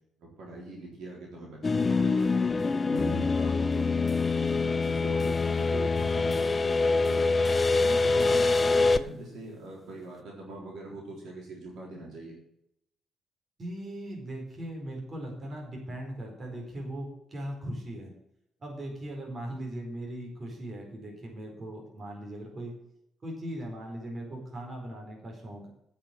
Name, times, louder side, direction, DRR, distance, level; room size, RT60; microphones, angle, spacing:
voice 1, 0.2-2.5 2.9-4.1 4.3-12.4, right 2 dB, 70° right, -2 dB, 3.9 m, -42 dB
sound 1, 1.6-9.0, left 3 dB, 30° left, 0.6 m, -25 dB
voice 2, 13.6-18.1 18.6-22.7 23.2-25.7, right 1 dB, 35° right, 0 dB, 4.3 m, -39 dB
8.9 x 6.6 x 8.3 m, 0.79 s
cardioid pair, 90°, 0 cm